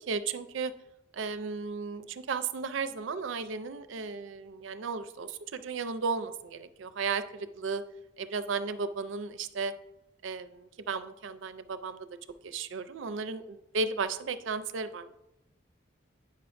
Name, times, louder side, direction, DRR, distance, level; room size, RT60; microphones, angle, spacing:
voice 1, 0.1-0.7 1.1-7.8 8.2-9.7 10.2-12.1 12.4-15.1, right 4 dB, 80° right, 12 dB, 0.4 m, -34 dB
8.8 x 5.4 x 2.5 m, 0.90 s
head